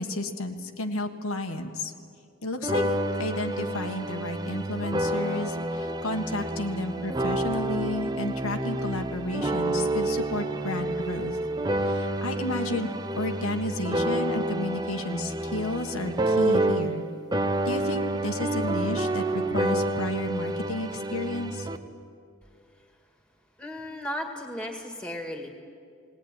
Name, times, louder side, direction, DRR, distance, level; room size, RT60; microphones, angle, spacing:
voice 1, 0.0-1.9 2.4-2.8 3.2-11.4 11.8-17.0 17.6-21.7, left 1 dB, 85° left, 5 dB, 1.6 m, -32 dB
sound 1, 2.6-17.1 17.3-21.8, right 1 dB, 20° right, 0.8 m, -29 dB
voice 2, 23.6-25.5, left 1 dB, 5° left, 4 dB, 2.0 m, -35 dB
20.0 x 18.0 x 9.9 m, 2.4 s
head